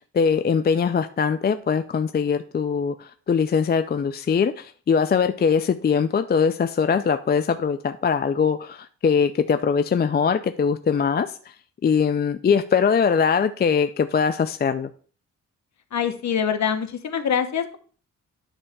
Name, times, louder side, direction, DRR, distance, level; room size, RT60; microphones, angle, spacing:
voice 1, 0.1-11.5 11.8-14.9, left 6 dB, 30° left, 10 dB, 0.4 m, -22 dB
voice 2, 15.9-17.8, left 7 dB, 60° left, 8 dB, 1.1 m, -24 dB
9.9 x 3.3 x 6.6 m, 0.42 s
cardioid pair, 115°, 32 cm